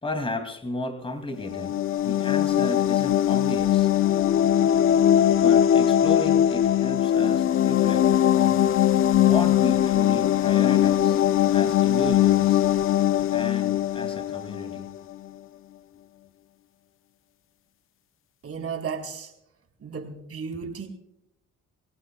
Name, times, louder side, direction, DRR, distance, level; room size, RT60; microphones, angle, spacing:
voice 1, 0.0-3.9 5.4-8.7 9.1-11.2 11.5-12.6 13.3-14.9, left 1 dB, 20° left, 7 dB, 2.6 m, -34 dB
sound 1, 1.4-15.0, left 11 dB, 45° left, 0.4 m, -21 dB
voice 2, 18.4-19.3 19.8-20.9, right 6 dB, 50° right, 3 dB, 4.1 m, -34 dB
27.0 x 17.0 x 2.3 m, 0.83 s
cardioid pair, 90°, 30 cm